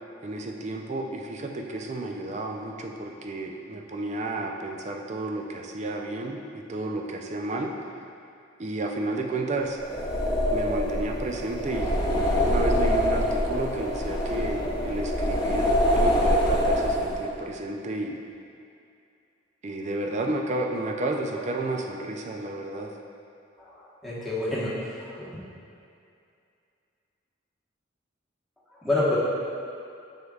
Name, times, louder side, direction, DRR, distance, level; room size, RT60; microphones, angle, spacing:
voice 1, 0.2-7.7 8.6-9.8 10.5-18.2 19.6-22.9, right 2 dB, 40° right, 2 dB, 0.5 m, -32 dB
sound 1, 9.8-17.4, equal, 20° left, 0.7 m, -25 dB
voice 2, 23.6-25.3 28.8-29.2, left 2 dB, ahead, -10 dB, 1.3 m, -28 dB
7.1 x 6.4 x 2.4 m, 2.5 s
head